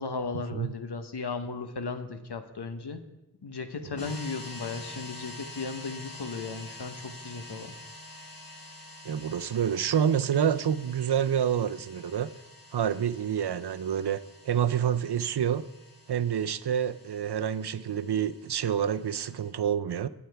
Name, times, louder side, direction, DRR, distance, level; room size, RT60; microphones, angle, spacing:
voice 1, 0.0-3.0 3.4-7.7, left 4 dB, 85° left, 8 dB, 1.0 m, -36 dB
sound 1, 4.0-19.5, left 1 dB, 65° left, 2.1 m, -47 dB
voice 2, 9.0-12.3 12.7-14.2 14.4-15.7 16.1-20.1, right 8 dB, 80° right, 13 dB, 0.6 m, -28 dB
20.5 x 7.1 x 3.4 m, 0.98 s
wide cardioid pair, 45°, 39 cm